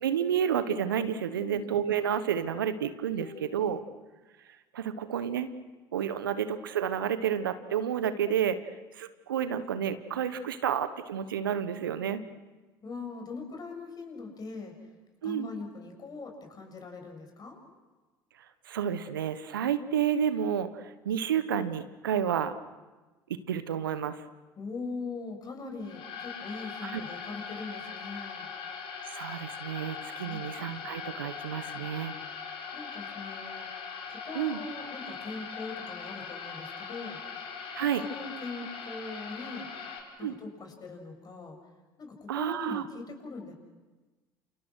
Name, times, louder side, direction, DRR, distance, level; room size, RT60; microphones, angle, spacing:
voice 1, 0.0-3.8 4.7-5.5 5.9-8.6 8.9-12.2 15.2-15.5 18.7-22.5 23.5-24.2 26.8-27.0 29.1-32.1 34.3-34.6 37.7-38.0 40.2-40.3 42.3-42.8, right 9 dB, 80° right, 12 dB, 1.2 m, -30 dB
voice 2, 3.2-3.5 12.8-14.7 15.2-17.6 24.6-28.5 30.3-30.5 32.7-33.7 34.1-37.2 37.7-39.7 40.2-41.6 42.0-43.5, left 4 dB, 35° left, 4 dB, 7.4 m, -41 dB
sound 1, 25.8-40.0, left 6 dB, 55° left, 7.2 m, -41 dB
30.0 x 28.5 x 6.4 m, 1.2 s
hypercardioid pair, 65°, 11 cm